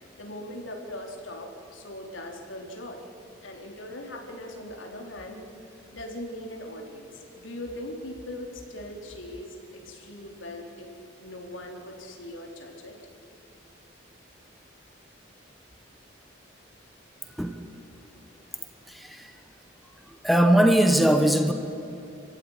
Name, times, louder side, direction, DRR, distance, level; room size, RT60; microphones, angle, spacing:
voice 1, 0.0-3.1 3.4-5.4 5.9-10.9 11.2-13.0, left 1 dB, 80° left, 1 dB, 4.0 m, -40 dB
voice 2, 18.9-19.3 20.1-21.5, right 1 dB, ahead, 6 dB, 1.2 m, -21 dB
28.5 x 15.5 x 9.9 m, 2.8 s
head